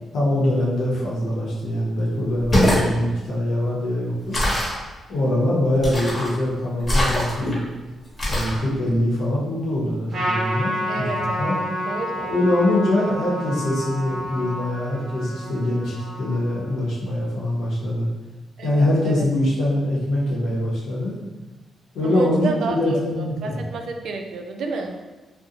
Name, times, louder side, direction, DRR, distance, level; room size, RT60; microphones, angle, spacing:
voice 1, 0.1-4.4 5.1-7.6 8.3-11.6 12.2-18.1 18.6-21.1 21.9-23.6, left 1 dB, 85° left, -6 dB, 0.8 m, -23 dB
sound 1, 2.3-2.9 4.3-4.8 5.8-6.3 6.8-7.5 8.2-8.6, equal, 35° left, 0.9 m, -21 dB
Trumpet, 10.1-16.8, equal, 55° right, 0.8 m, -30 dB
voice 2, 10.9-12.3 18.6-19.3 22.0-22.8 23.2-24.9, right 4 dB, 80° right, 3 dB, 0.3 m, -31 dB
2.6 x 2.0 x 2.7 m, 1.2 s
cardioid pair, 95°, 0 cm